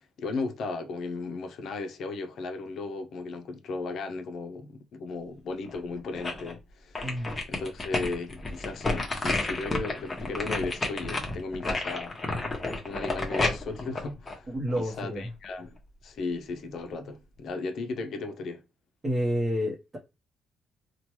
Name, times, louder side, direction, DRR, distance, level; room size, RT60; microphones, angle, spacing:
voice 1, 0.0-12.2 12.8-14.5 14.7-15.8 16.0-18.6, left 3 dB, 65° left, 0.5 m, -36 dB
sound 1, 5.7-6.5 6.9-15.0 15.4-15.5, left 2 dB, 25° left, 0.9 m, -31 dB
voice 2, 7.0-7.4 14.5-15.3 19.0-20.0, equal, 30° right, 0.8 m, -29 dB
2.9 x 2.2 x 3.0 m
cardioid pair, 90°, 0 cm